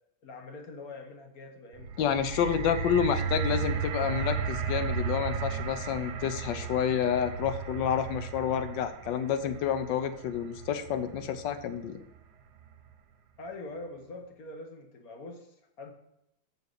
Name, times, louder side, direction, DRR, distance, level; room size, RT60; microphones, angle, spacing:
voice 1, 0.2-2.1 2.7-3.4 13.4-15.9, left 2 dB, 50° left, 4 dB, 1.5 m, -44 dB
sound 1, 1.7-12.0 12.7-12.8, right 5 dB, 60° right, 1.2 m, -35 dB
voice 2, 2.0-12.0, left 8 dB, 70° left, 11 dB, 1.3 m, -29 dB
6.9 x 6.7 x 6.5 m, 0.85 s
omnidirectional pair, 2.3 m